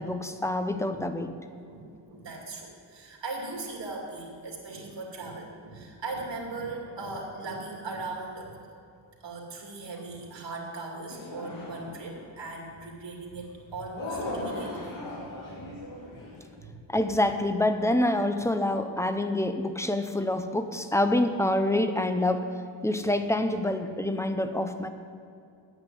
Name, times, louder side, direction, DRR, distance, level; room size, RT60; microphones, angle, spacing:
voice 1, 0.0-1.3 16.1-16.2 16.9-22.5 22.8-24.9, left 1 dB, 5° left, 8 dB, 0.6 m, -26 dB
voice 2, 1.6-14.9 15.5-15.7 16.6-16.8, right 3 dB, 70° right, 0 dB, 2.6 m, -39 dB
Crowd Ooohs and Ahhhs in Excitement, 11.1-12.3 13.9-16.5, left 1 dB, 90° left, 3.7 m, -37 dB
9.7 x 8.2 x 9.1 m, 2.5 s
wide cardioid pair, 150°, 44 cm